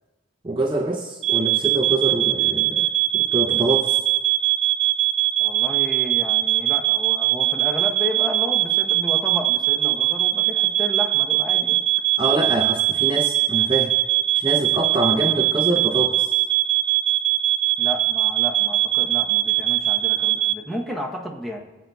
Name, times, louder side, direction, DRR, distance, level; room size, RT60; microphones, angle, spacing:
voice 1, 0.4-4.0 12.2-13.9 14.3-16.3, right 2 dB, 25° right, 0 dB, 0.6 m, -25 dB
sound 1, 1.2-20.5, right 15 dB, 75° right, 0.4 m, -21 dB
voice 2, 5.4-11.8 17.8-21.6, equal, ahead, -1 dB, 0.8 m, -32 dB
19.0 x 7.9 x 2.3 m, 1.1 s
head